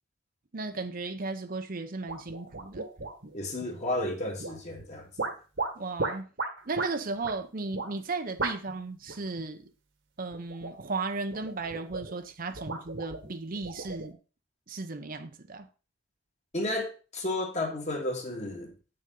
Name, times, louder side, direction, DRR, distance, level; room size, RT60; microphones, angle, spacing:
voice 1, 0.5-2.9 3.6-3.8 5.8-6.3 6.7-9.7 10.2-14.2 14.7-15.7, right 3 dB, 45° right, 0.7 m, -35 dB
sound 1, 2.1-3.4 4.4-4.8 5.2-6.9 7.2-7.4 7.7-7.9 8.4-8.8 9.1-9.5 10.3-10.9 11.3-12.2 12.5-14.1, right 3 dB, 60° right, 1.5 m, -35 dB
voice 2, 3.3-5.1 16.5-18.7, left 1 dB, 35° left, 1.9 m, -32 dB
8.9 x 6.6 x 3.8 m
head